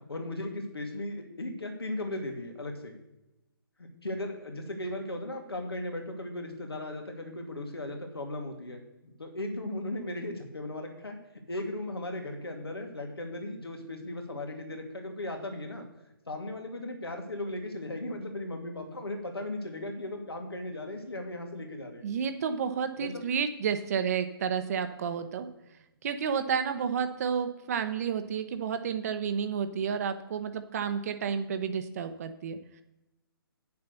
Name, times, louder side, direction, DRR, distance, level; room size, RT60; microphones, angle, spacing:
voice 1, 0.1-2.9 3.8-11.2 11.5-15.8 16.3-22.1 23.0-23.2, left 1 dB, 90° left, 3 dB, 2.5 m, -37 dB
voice 2, 22.0-25.5 26.0-32.8, right 7 dB, 40° right, 8 dB, 0.7 m, -31 dB
8.8 x 7.0 x 6.8 m, 0.97 s
figure-of-eight pair, 150°, 12 cm